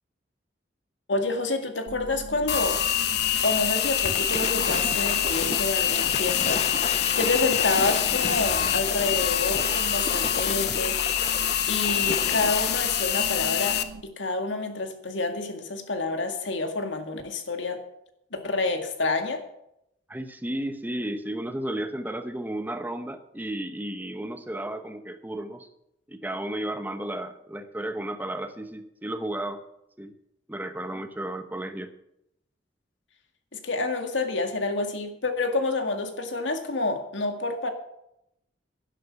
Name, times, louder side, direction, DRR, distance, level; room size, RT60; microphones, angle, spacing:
voice 1, 1.1-2.8 3.4-6.6 7.2-11.0 11.7-13.8 14.2-17.8 18.3-19.4 33.5-37.7, left 3 dB, 80° left, 6 dB, 2.0 m, -28 dB
sound 1, 1.9-14.0, right 4 dB, 60° right, 0.5 m, -42 dB
sound 2, 2.5-13.8, left 10 dB, 60° left, 0.9 m, -26 dB
Waves surf / Splash splatter, 3.9-13.1, left 5 dB, 35° left, 0.5 m, -33 dB
voice 2, 20.1-25.7 26.1-29.6 30.0-30.1 30.5-31.9, right 1 dB, 10° right, 8 dB, 0.9 m, -33 dB
12.0 x 11.0 x 5.9 m, 0.80 s
head